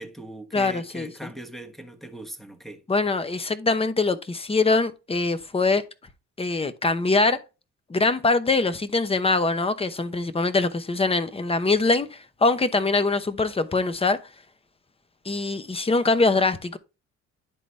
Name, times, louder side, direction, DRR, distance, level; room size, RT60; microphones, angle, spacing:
voice 1, 0.0-2.8, right 1 dB, ahead, 1.2 m, -40 dB
voice 2, 0.5-1.3 2.9-5.8 6.4-7.4 7.9-14.2 15.2-16.8, left 3 dB, 20° left, 0.8 m, -23 dB
10.5 x 4.0 x 3.3 m
cardioid pair, 90°, 30 cm